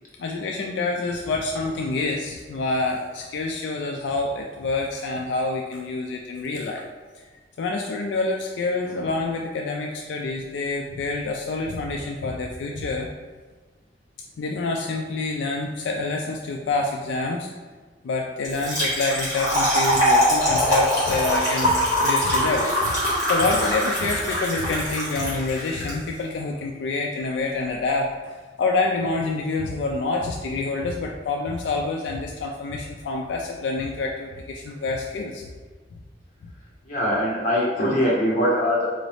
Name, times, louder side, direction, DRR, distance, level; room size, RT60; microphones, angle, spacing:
voice 1, 0.2-6.8 7.6-13.1 14.4-17.5 18.0-23.0 23.3-28.1 28.6-35.4, left 3 dB, 80° left, 0 dB, 0.3 m, -27 dB
Trickle dribble / Fill (with liquid), 18.4-25.9, equal, 20° right, 1.4 m, -22 dB
voice 2, 36.8-38.9, equal, 45° left, -6 dB, 1.1 m, -22 dB
3.8 x 2.6 x 3.3 m, 1.4 s
head